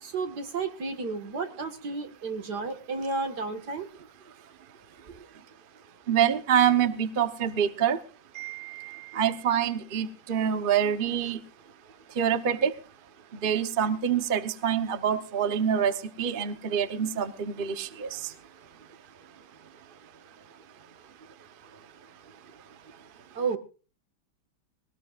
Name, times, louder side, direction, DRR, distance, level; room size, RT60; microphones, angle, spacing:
voice 1, 0.0-3.9 23.3-23.6, right 4 dB, 70° right, 7 dB, 2.4 m, -32 dB
voice 2, 6.1-8.0 8.3-11.4 12.2-12.7 13.4-18.3, right 8 dB, 40° right, 10 dB, 1.0 m, -26 dB
20.5 x 18.5 x 2.5 m, 0.35 s
omnidirectional pair, 1.8 m